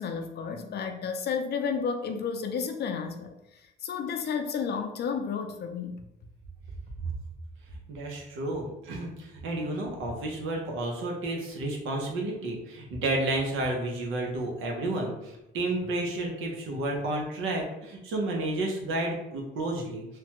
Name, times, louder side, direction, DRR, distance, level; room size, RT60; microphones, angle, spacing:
voice 1, 0.0-3.3 3.8-6.0, left 6 dB, 55° left, 6 dB, 0.5 m, -31 dB
voice 2, 7.9-20.1, right 2 dB, 85° right, 1 dB, 0.8 m, -31 dB
3.2 x 2.2 x 2.9 m, 0.91 s
cardioid pair, 90°, 20 cm